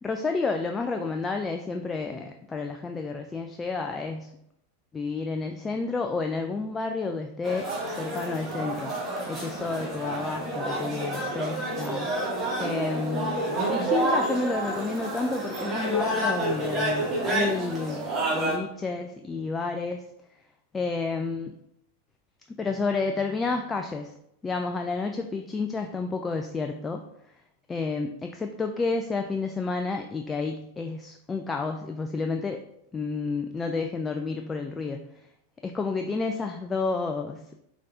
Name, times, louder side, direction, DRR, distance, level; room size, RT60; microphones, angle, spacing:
voice 1, 0.0-4.4 4.9-8.9 9.3-12.3 12.6-20.0 20.7-21.5 22.6-24.1 24.4-27.0 27.7-32.6 32.9-35.0 35.6-37.4, left 4 dB, 15° left, 4 dB, 0.3 m, -30 dB
sound 1, 7.4-18.6, right 1 dB, 25° right, 1.4 m, -29 dB
5.2 x 3.6 x 2.6 m, 0.76 s
figure-of-eight pair, 90°, 0 cm